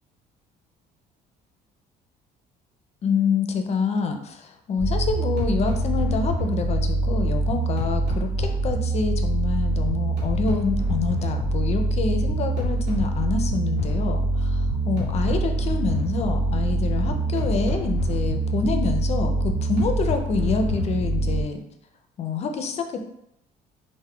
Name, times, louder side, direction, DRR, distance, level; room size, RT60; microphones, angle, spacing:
voice 1, 3.0-21.6 22.2-22.8, left 4 dB, 40° left, 6 dB, 0.4 m, -27 dB
sound 1, 4.8-21.4, right 1 dB, 90° right, 1.0 m, -24 dB
2.2 x 2.0 x 3.5 m, 0.79 s
cardioid pair, 110°, 17 cm